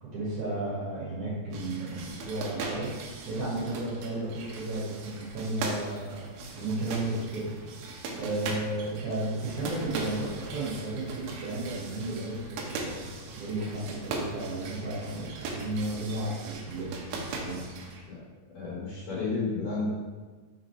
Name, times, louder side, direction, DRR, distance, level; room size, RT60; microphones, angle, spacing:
voice 1, 0.0-2.9 3.3-6.3 6.5-7.5 8.1-13.1 13.3-17.7, right 2 dB, 55° right, -9 dB, 2.6 m, -33 dB
sound 1, 1.5-18.0, right 3 dB, 80° right, 2.1 m, -39 dB
voice 2, 18.5-19.9, left 3 dB, 60° left, -8 dB, 2.6 m, -31 dB
6.2 x 3.9 x 4.5 m, 1.4 s
omnidirectional pair, 4.8 m